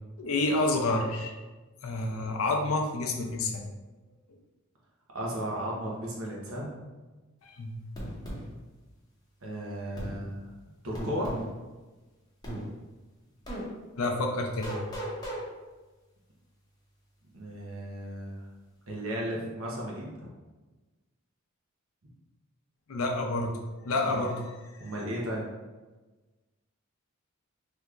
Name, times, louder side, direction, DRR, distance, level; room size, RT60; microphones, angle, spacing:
voice 1, 0.2-1.4 1.8-3.7 7.4-7.8 14.0-14.8 22.9-23.5 23.8-24.4, left 2 dB, 75° left, 3 dB, 0.5 m, -29 dB
voice 2, 5.1-6.9 9.4-10.5 10.8-11.3 17.3-18.5 18.9-20.3 24.0-24.2 24.8-25.4, equal, 75° right, -3 dB, 0.9 m, -35 dB
sound 1, 8.0-8.4 10.0-10.2 10.9-11.5 12.4-12.6 13.5-13.6 14.6-15.4, right 1 dB, 20° left, 0.7 m, -36 dB
3.4 x 3.0 x 2.4 m, 1.2 s
head